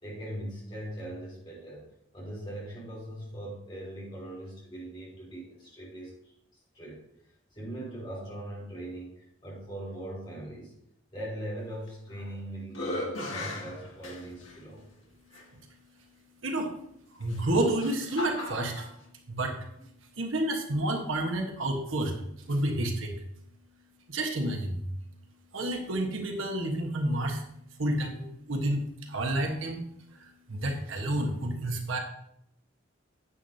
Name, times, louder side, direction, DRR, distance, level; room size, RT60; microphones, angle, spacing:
voice 1, 0.0-6.3 6.7-7.1 7.5-10.8 11.1-14.8, right 1 dB, 25° left, -5 dB, 3.5 m, -40 dB
sound 1, 11.9-12.3 12.7-14.6 15.3-15.4 17.2-18.9, left 1 dB, 85° left, 2.1 m, -37 dB
voice 2, 16.4-16.7 17.1-18.9 19.3-19.7 20.0-23.1 24.1-24.8 25.5-27.5 27.8-29.8 30.1-32.0, right 1 dB, 85° right, 2 dB, 1.3 m, -30 dB
9.6 x 8.5 x 2.8 m, 0.75 s
head